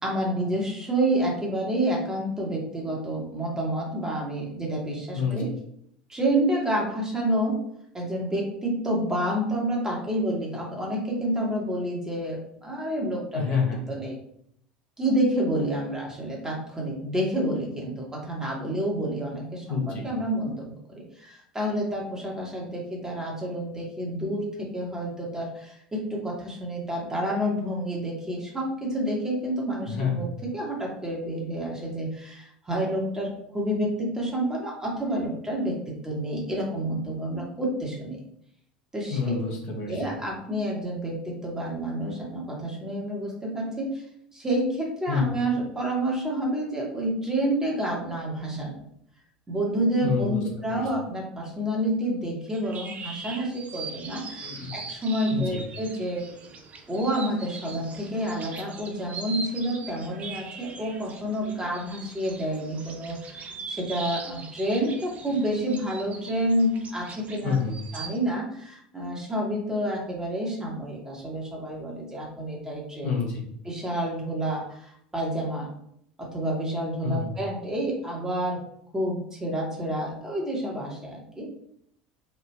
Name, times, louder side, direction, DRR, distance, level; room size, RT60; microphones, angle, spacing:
voice 1, 0.0-5.5 6.1-7.6 7.9-13.6 13.9-14.2 15.0-20.7 21.2-38.2 38.9-39.3 39.9-44.0 44.3-48.8 49.5-56.2 56.9-67.6 67.9-73.1 73.6-75.7 76.2-78.6 78.9-81.5, right 1 dB, 15° right, -2 dB, 1.1 m, -29 dB
voice 2, 13.3-13.8 19.7-20.0 29.9-30.2 39.1-40.0 45.1-45.2 50.0-50.4 50.7-50.8 54.4-54.7 55.3-55.6 67.4-67.8 73.0-73.4 77.0-77.3, left 6 dB, 50° left, -2 dB, 0.9 m, -27 dB
sound 1, 52.5-68.2, right 4 dB, 30° right, 0.5 m, -41 dB
3.2 x 2.3 x 3.2 m, 0.70 s
figure-of-eight pair, 70°, 5 cm